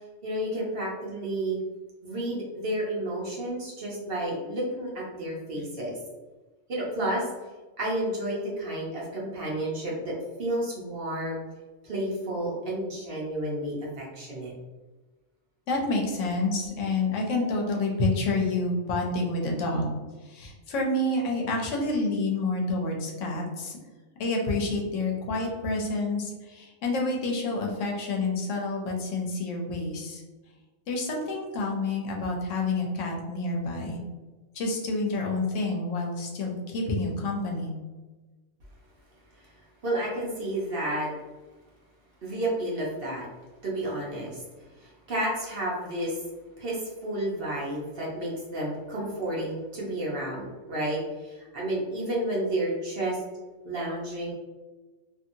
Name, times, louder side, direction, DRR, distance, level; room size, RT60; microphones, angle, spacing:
voice 1, 0.2-1.6 2.0-6.0 6.7-7.3 7.8-11.4 11.8-14.5 39.8-41.1 42.2-43.3 43.6-44.4 44.8-46.2 46.6-53.2 53.6-54.3, right 1 dB, 55° right, -4 dB, 0.8 m, -31 dB
voice 2, 15.7-20.0 20.2-23.8 24.2-30.2 30.9-34.0 34.5-37.7, left 2 dB, 75° left, 0 dB, 1.0 m, -28 dB
2.7 x 2.6 x 2.6 m, 1.2 s
omnidirectional pair, 1.3 m